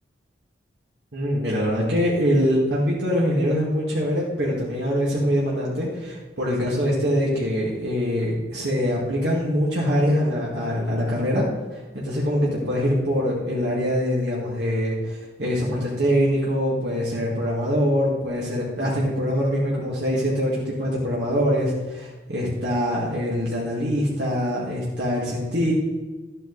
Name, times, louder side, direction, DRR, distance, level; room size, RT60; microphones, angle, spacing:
voice 1, 1.1-11.4 11.7-25.7, equal, 65° right, -5 dB, 2.1 m, -23 dB
12.5 x 9.0 x 4.0 m, 1.3 s
head